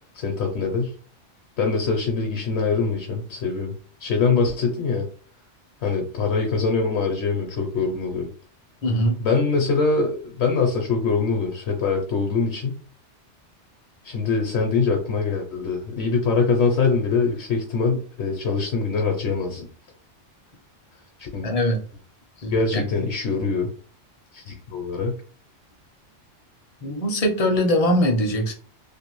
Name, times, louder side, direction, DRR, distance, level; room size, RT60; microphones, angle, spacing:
voice 1, 0.1-0.9 1.6-3.7 4.0-5.1 5.8-8.3 9.2-12.8 14.0-19.7 21.2-21.5 22.5-23.7 24.3-25.1, left 4 dB, 70° left, 1 dB, 0.8 m, -23 dB
voice 2, 8.8-9.2 21.4-21.8 22.4-22.8 26.8-28.5, equal, 40° left, 3 dB, 0.5 m, -22 dB
2.6 x 2.4 x 3.0 m, 0.43 s
omnidirectional pair, 1.2 m